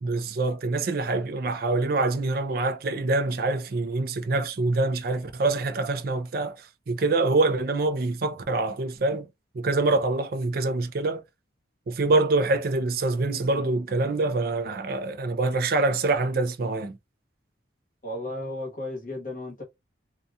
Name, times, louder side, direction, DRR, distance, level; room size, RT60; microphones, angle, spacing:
voice 1, 0.0-9.3 9.5-11.2 11.9-17.0, right 3 dB, 50° right, 0.4 m, -25 dB
voice 2, 18.0-19.6, left 1 dB, 45° left, 1.1 m, -34 dB
2.7 x 2.3 x 2.3 m
head